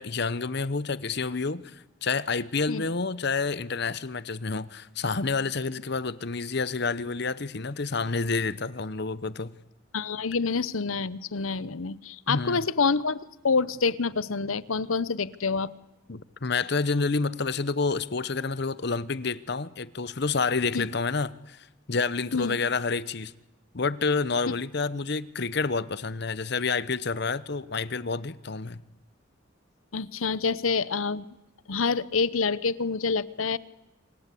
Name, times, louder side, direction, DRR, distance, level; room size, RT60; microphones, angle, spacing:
voice 1, 0.0-9.5 12.3-12.6 16.1-23.3 23.7-28.8, left 4 dB, 55° left, 0.9 m, -29 dB
voice 2, 9.9-15.7 20.7-20.9 22.3-22.6 29.9-31.3 31.7-33.6, left 4 dB, 85° left, 0.9 m, -27 dB
27.5 x 25.0 x 8.5 m
head